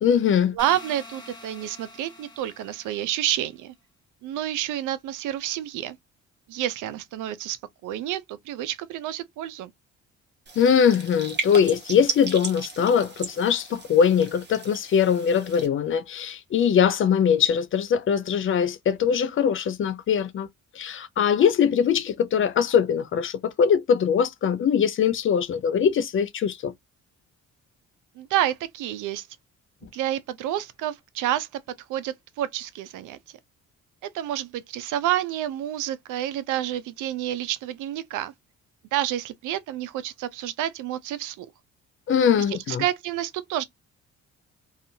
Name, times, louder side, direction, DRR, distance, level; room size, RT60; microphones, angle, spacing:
voice 1, 0.0-0.6 10.6-20.5 20.7-26.7 42.1-42.8, left 7 dB, 45° left, 0.4 m, -22 dB
voice 2, 0.5-3.7 4.2-6.0 6.5-9.7 28.2-29.3 29.9-31.5 31.9-33.2 34.1-38.3 38.9-41.5 42.4-43.6, right 12 dB, 85° right, 0.5 m, -29 dB
sound 1, 0.6-3.5, left 2 dB, 15° left, 1.1 m, -46 dB
sound 2, 10.5-15.7, right 4 dB, 35° right, 1.0 m, -36 dB
2.6 x 2.4 x 2.6 m
cardioid pair, 90°, 30 cm